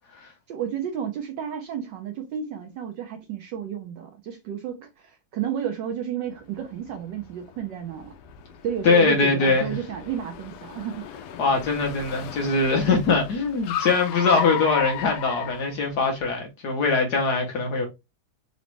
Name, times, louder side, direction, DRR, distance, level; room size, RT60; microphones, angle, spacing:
voice 1, 0.5-8.1 8.6-11.0, right 8 dB, 75° right, 1.0 m, -32 dB
Car, 6.4-16.3, left 9 dB, 80° left, 0.9 m, -36 dB
voice 2, 8.8-9.7 11.4-17.9, left 4 dB, 60° left, 1.2 m, -22 dB
4.0 x 2.9 x 3.2 m
omnidirectional pair, 2.4 m